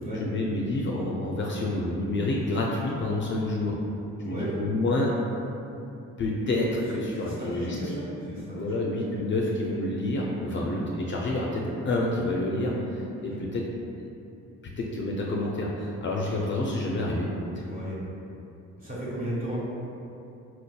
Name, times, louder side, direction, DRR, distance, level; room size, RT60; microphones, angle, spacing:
voice 1, 0.1-3.8 4.2-5.1 6.2-7.8 8.5-13.6 14.8-17.3, left 2 dB, 40° left, -3 dB, 0.4 m, -28 dB
voice 2, 4.2-4.5 6.9-8.8 10.5-10.7 13.3-13.4 17.7-18.0 18.8-19.6, equal, 30° right, -7 dB, 1.3 m, -35 dB
4.3 x 2.6 x 2.2 m, 2.8 s
cardioid pair, 90°, 30 cm